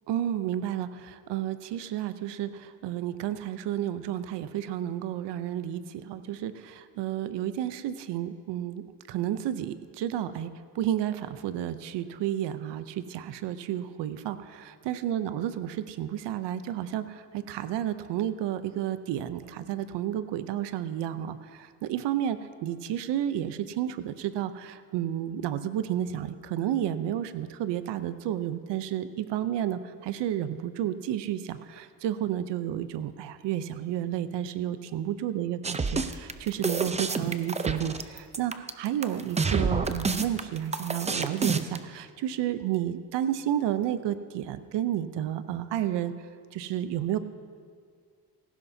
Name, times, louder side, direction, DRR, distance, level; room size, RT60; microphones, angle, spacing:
voice 1, 0.1-10.5 10.8-14.6 14.9-46.1 46.5-47.2, right 11 dB, 85° right, 12 dB, 0.7 m, -31 dB
sound 1, 35.6-41.8, right 4 dB, 15° right, 0.5 m, -28 dB
18.0 x 15.0 x 2.7 m, 2.1 s
cardioid pair, 105°, 41 cm